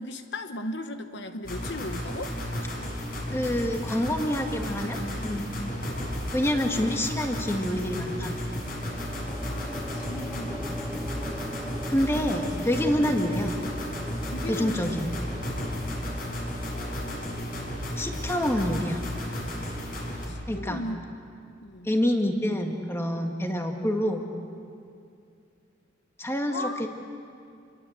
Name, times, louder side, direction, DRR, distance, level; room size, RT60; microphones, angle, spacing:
voice 1, 0.0-2.3 6.6-6.9 9.5-10.8 12.3-12.4 14.3-15.0 16.7-18.1 20.2-21.0 21.6-21.9 26.5-26.9, left 1 dB, 65° left, 7 dB, 1.0 m, -37 dB
sound 1, 1.4-20.3, left 1 dB, 45° left, 6.3 m, -33 dB
voice 2, 3.3-5.5 6.3-8.4 11.9-13.5 14.5-15.1 18.0-19.0 20.5-20.8 21.8-24.2 26.2-26.9, equal, 15° left, 3 dB, 2.0 m, -27 dB
sound 2, 8.2-20.5, equal, ahead, 1.2 m, -41 dB
28.0 x 22.5 x 8.1 m, 2.5 s
head